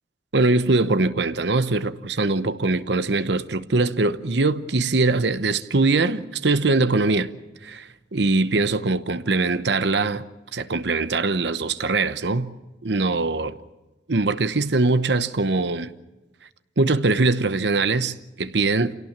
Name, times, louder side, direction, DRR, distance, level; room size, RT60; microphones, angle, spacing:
voice 1, 0.3-7.3 7.6-10.2 10.5-12.5 12.8-13.6 14.1-15.9 16.8-19.0, right 3 dB, 70° right, 1.0 m, -22 dB
28.0 x 17.5 x 7.4 m
head